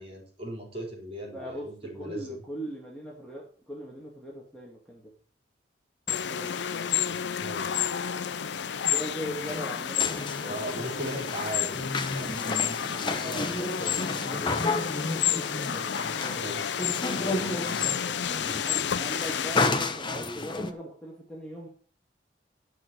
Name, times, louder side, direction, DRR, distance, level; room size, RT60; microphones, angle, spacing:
voice 1, 0.0-2.4 7.4-7.9 10.5-12.3 16.4-16.8 17.2-18.1, equal, 30° right, -2 dB, 4.5 m, -38 dB
voice 2, 1.3-5.1 6.1-6.9 8.9-11.2 13.1-13.5 14.2-16.9 18.5-21.7, equal, 5° left, -4 dB, 2.5 m, -40 dB
sound 1, 6.1-19.7, left 8 dB, 65° left, 0.5 m, -30 dB
sound 2, 9.4-20.7, left 3 dB, 25° left, 0.8 m, -32 dB
12.0 x 6.1 x 6.2 m, 0.43 s
head